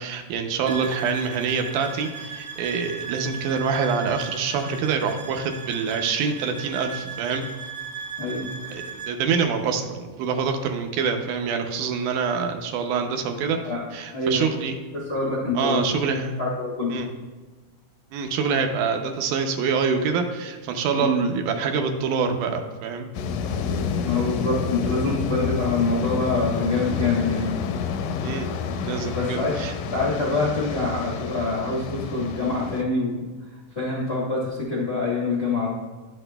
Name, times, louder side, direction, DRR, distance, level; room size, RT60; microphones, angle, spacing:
voice 1, 0.0-7.5 8.7-13.6 13.9-14.8 15.6-16.3 16.9-17.1 18.1-23.1 28.2-28.5 28.8-29.7, right 5 dB, 80° right, 5 dB, 2.1 m, -25 dB
sound 1, 0.7-9.2, right 5 dB, 50° right, 1.0 m, -37 dB
voice 2, 8.2-8.5 13.6-13.8 14.1-14.4 15.1-15.8 16.4-17.0 20.9-21.1 24.0-27.5 29.1-29.5 29.9-35.7, left 3 dB, 65° left, -7 dB, 0.6 m, -25 dB
sound 2, 23.1-32.8, left 6 dB, 85° left, 2.1 m, -29 dB
11.0 x 6.3 x 2.2 m, 1.3 s
omnidirectional pair, 3.6 m